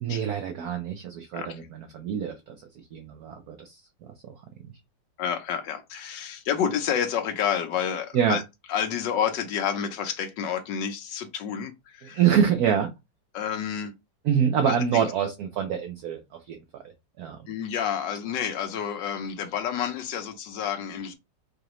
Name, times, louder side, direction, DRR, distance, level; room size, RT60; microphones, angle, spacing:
voice 1, 0.0-1.6 1.9-3.8 8.1-8.4 12.1-12.9 14.2-16.2 16.5-16.6 17.2-17.4, right 8 dB, 65° right, 1.0 m, -25 dB
voice 2, 1.3-1.7 5.2-8.4 8.7-12.2 13.3-13.9 14.6-15.0 17.5-21.1, left 8 dB, 80° left, 1.4 m, -29 dB
4.7 x 2.5 x 3.0 m
omnidirectional pair, 2.0 m